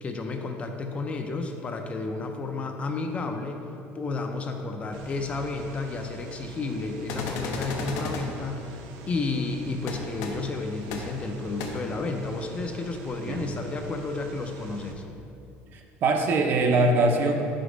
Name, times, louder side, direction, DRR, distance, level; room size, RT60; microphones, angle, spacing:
voice 1, 0.0-3.6 3.9-8.7 9.1-15.0, left 3 dB, 25° left, 4 dB, 0.4 m, -32 dB
sound 1, 4.9-14.9, right 1 dB, 85° right, 0.6 m, -43 dB
sound 2, 7.1-8.2 9.9-10.0 10.2-10.3 10.9-11.0 11.6-11.7, left 4 dB, 80° left, 0.7 m, -32 dB
voice 2, 15.7-17.3, right 2 dB, 45° right, 3 dB, 0.6 m, -22 dB
5.1 x 4.2 x 5.0 m, 2.6 s
cardioid pair, 150°, 5 cm